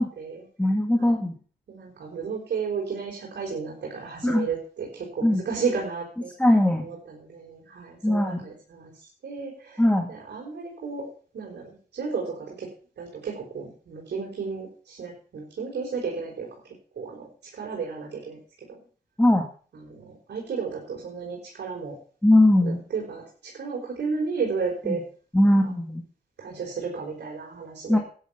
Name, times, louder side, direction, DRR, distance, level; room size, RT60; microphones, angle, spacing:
voice 1, 0.6-1.3 4.2-4.5 5.2-5.4 6.4-6.9 8.0-8.5 9.8-10.1 19.2-19.5 22.2-22.8 24.9-25.0 25.3-26.0 27.9-28.0, left 1 dB, 5° left, 4 dB, 1.9 m, -20 dB
voice 2, 1.7-6.3 6.8-8.9 9.2-9.8 10.1-11.1 11.3-12.7 13.0-16.5 17.0-17.3 17.5-18.4 19.8-21.9 22.6-25.0 25.6-25.7 26.4-28.0, right 5 dB, 70° right, -2 dB, 4.9 m, -33 dB
12.5 x 9.8 x 5.8 m, 0.43 s
cardioid pair, 90°, 18 cm